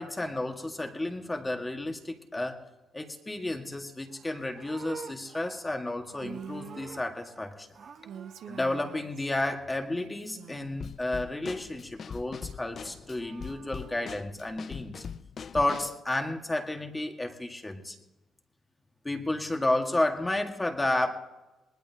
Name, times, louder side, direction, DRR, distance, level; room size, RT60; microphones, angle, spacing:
voice 1, 0.0-2.6 2.9-7.7 8.5-15.0 15.5-18.0 19.0-21.3, left 2 dB, 15° left, 4 dB, 1.8 m, -32 dB
Livestock farm animals working animals, 4.0-7.5 7.7-9.0 12.8-14.0, right 6 dB, 55° right, 1.1 m, -49 dB
Female speech woman speaking, 6.2-6.9 8.0-9.4 10.0-10.9, right 8 dB, 75° right, 0.8 m, -45 dB
Drum kit / Snare drum, 10.8-16.0, left 6 dB, 50° left, 0.4 m, -42 dB
20.0 x 20.0 x 2.9 m, 1.1 s
cardioid pair, 90°, 0 cm